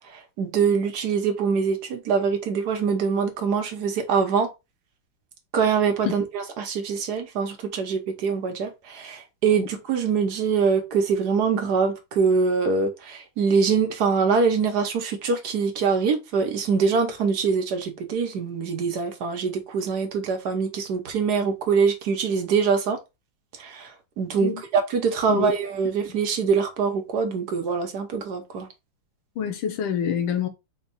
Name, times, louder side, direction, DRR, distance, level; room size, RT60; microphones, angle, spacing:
voice 1, 0.1-4.5 5.5-23.0 23.6-23.9 24.2-28.7, right 5 dB, 60° right, 1.3 m, -24 dB
voice 2, 29.4-30.5, left 8 dB, 90° left, 1.6 m, -26 dB
4.4 x 2.3 x 4.0 m
omnidirectional pair, 2.2 m